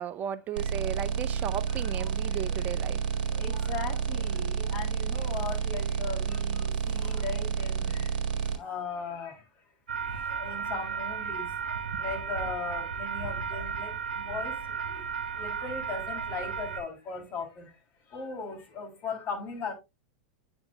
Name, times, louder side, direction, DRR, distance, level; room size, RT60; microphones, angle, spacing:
voice 1, 0.0-3.0, right 9 dB, 35° right, 0.6 m, -35 dB
sound 1, 0.6-8.6, right 7 dB, 60° right, 1.9 m, -30 dB
voice 2, 1.9-2.7 3.0-9.5 9.9-17.8 18.1-19.7, left 4 dB, 35° left, 3.1 m, -39 dB
sound 2, 9.9-16.8, right 6 dB, 85° right, 0.9 m, -34 dB
8.7 x 6.2 x 2.3 m
hypercardioid pair, 95°, 5 cm